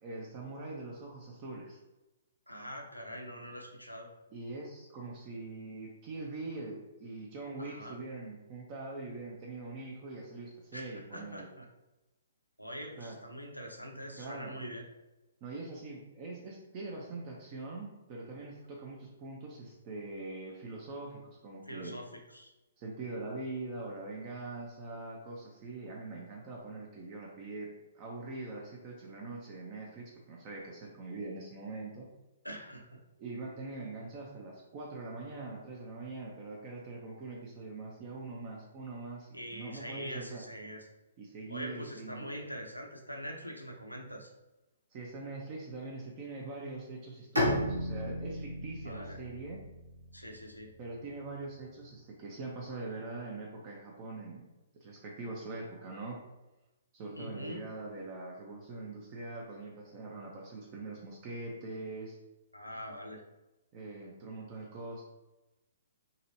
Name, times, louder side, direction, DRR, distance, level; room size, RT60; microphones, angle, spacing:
voice 1, 0.0-1.8 4.3-11.5 13.0-13.2 14.2-14.6 15.4-22.0 22.8-32.1 33.2-40.4 41.2-42.3 44.9-49.6 50.8-54.5 54.7-56.2 56.9-62.2 63.7-65.0, right 3 dB, 30° right, -2 dB, 0.6 m, -43 dB
voice 2, 2.5-4.1 7.6-8.0 10.7-11.7 12.6-14.8 21.7-22.5 32.4-33.0 39.3-40.9 41.5-44.3 48.8-49.2 50.1-50.7 57.1-57.7 62.5-63.2, equal, 90° left, 2 dB, 0.7 m, -43 dB
Bowed string instrument, 47.4-51.0, equal, 80° right, 1.1 m, -34 dB
4.0 x 3.0 x 2.6 m, 1.0 s
figure-of-eight pair, 125°, 0 cm